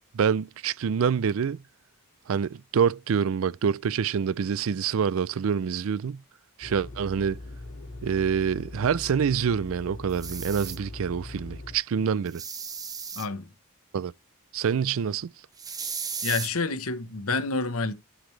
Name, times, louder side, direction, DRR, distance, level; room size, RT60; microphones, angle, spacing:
voice 1, 0.1-1.6 2.3-6.2 6.6-7.4 8.0-12.4 13.9-14.1 14.5-15.3, right 7 dB, 65° right, 0.4 m, -26 dB
sound 1, 6.6-11.8, left 2 dB, 65° left, 3.2 m, -41 dB
sound 2, 10.1-10.8 12.3-13.3 15.6-16.5, right 6 dB, 15° right, 0.8 m, -35 dB
voice 2, 13.2-13.5 16.2-17.9, left 3 dB, 90° left, 1.2 m, -28 dB
11.5 x 4.9 x 3.3 m
head